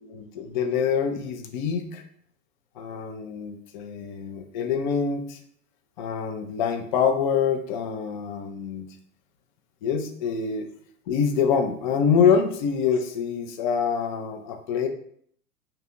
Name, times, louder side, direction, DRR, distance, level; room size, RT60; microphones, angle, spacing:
voice 1, 0.0-2.0 2.8-5.4 6.0-8.9 9.8-10.7 11.1-14.9, left 6 dB, 35° left, 5 dB, 0.4 m, -25 dB
2.8 x 2.3 x 3.7 m, 0.64 s
figure-of-eight pair, 95°, 47 cm